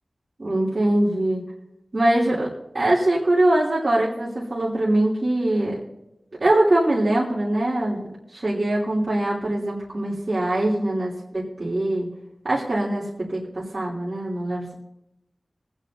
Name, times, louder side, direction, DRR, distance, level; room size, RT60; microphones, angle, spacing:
voice 1, 0.4-1.4 1.9-5.8 6.4-12.1 12.4-14.7, right 1 dB, 60° right, -7 dB, 3.2 m, -22 dB
26.0 x 8.9 x 2.8 m, 0.87 s
wide cardioid pair, 45°, 0 cm